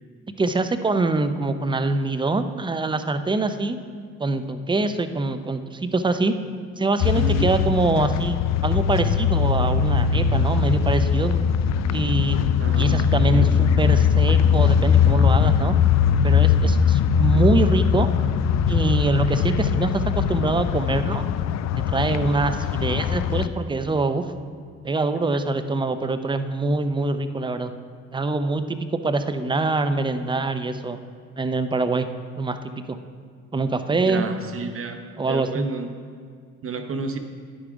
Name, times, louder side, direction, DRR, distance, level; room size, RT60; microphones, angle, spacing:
voice 1, 0.4-3.8 4.2-6.3 6.8-11.5 11.9-12.4 12.8-15.8 16.2-18.1 18.7-21.2 21.9-24.3 24.8-27.7 28.1-31.0 31.4-32.1 32.4-33.0 33.5-34.2 35.2-35.7, right 3 dB, 15° right, 10 dB, 0.6 m, -24 dB
sound 1, 7.0-23.5, left 7 dB, 55° left, 0.4 m, -20 dB
voice 2, 7.2-7.5 12.6-13.5 34.1-35.9 36.6-37.2, right 4 dB, 45° right, 7 dB, 0.8 m, -31 dB
10.5 x 5.0 x 5.0 m, 2.1 s
supercardioid pair, 65°, 32 cm